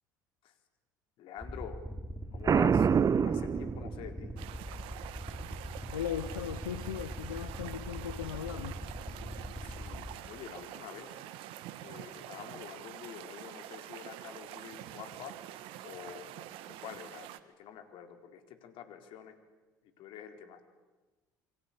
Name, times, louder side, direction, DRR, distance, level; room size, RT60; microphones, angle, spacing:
voice 1, 1.2-1.8 2.3-2.9 3.2-4.4 9.6-11.2 11.8-15.4 15.8-16.3 16.8-19.4 20.0-20.6, left 9 dB, 60° left, 7 dB, 4.1 m, -47 dB
sound 1, 1.4-10.1, equal, ahead, 5.6 m, -42 dB
Boom, 2.4-4.3, right 7 dB, 35° right, 1.1 m, -26 dB
sound 2, 4.4-17.4, right 13 dB, 65° right, 1.7 m, -46 dB
voice 2, 5.9-8.8, left 9 dB, 85° left, 12 dB, 1.0 m, -38 dB
28.0 x 24.5 x 8.6 m, 1.2 s
hypercardioid pair, 60°, 10 cm